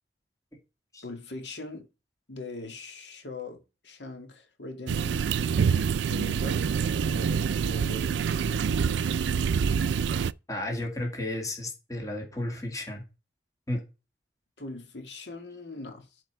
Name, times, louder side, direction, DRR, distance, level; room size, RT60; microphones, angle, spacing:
voice 1, 1.0-1.9 2.3-5.2 6.1-6.7 7.0-9.1 14.6-16.1, left 2 dB, 85° left, 2.3 m, -41 dB
sound 1, 4.9-10.3, right 6 dB, 90° right, 0.4 m, -26 dB
voice 2, 10.5-13.0 13.7-13.8, left 1 dB, 20° left, 2.2 m, -33 dB
11.5 x 4.8 x 4.9 m
head